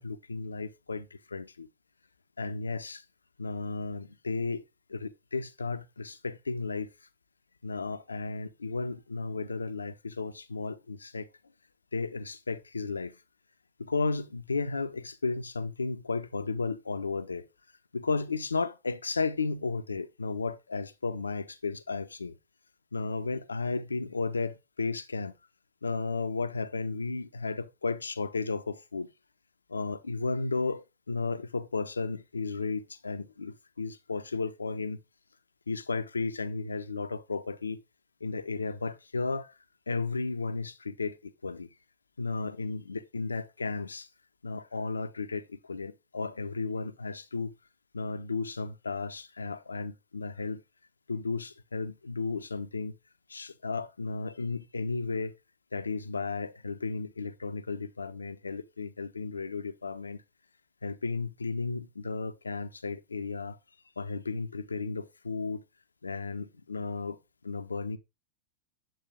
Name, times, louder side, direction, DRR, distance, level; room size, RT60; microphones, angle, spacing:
voice 1, 0.0-1.7 2.4-3.0 3.4-4.6 4.9-6.9 7.6-11.3 11.9-13.1 13.8-17.4 17.9-22.3 22.9-25.3 25.8-29.1 29.7-35.0 35.7-37.8 38.2-39.5 39.9-41.7 42.2-44.1 44.4-47.5 47.9-50.6 51.1-52.9 53.3-55.3 55.7-60.2 60.8-63.6 64.0-65.6 66.0-67.2 67.4-68.0, left 4 dB, 75° left, 0.8 m, -34 dB
9.3 x 7.5 x 3.8 m
figure-of-eight pair, 90°, 0 cm